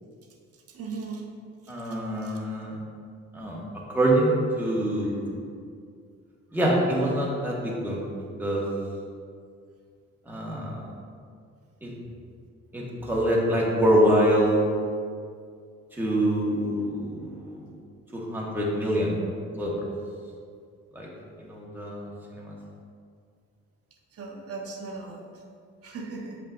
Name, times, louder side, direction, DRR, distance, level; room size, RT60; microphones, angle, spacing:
voice 1, 0.7-1.3 2.2-2.3 24.1-25.2 25.8-26.4, right 4 dB, 50° right, 0 dB, 1.1 m, -37 dB
voice 2, 1.7-2.8 3.3-3.6 3.9-5.4 6.5-8.0 8.4-8.6 10.3-10.8 11.8-11.9 12.7-14.6 15.9-17.6 18.1-19.1 19.6-19.9 20.9-21.1 21.4-22.5, right 1 dB, 5° right, -5 dB, 1.5 m, -25 dB
7.4 x 5.4 x 2.6 m, 2.2 s
cardioid pair, 90°, 30 cm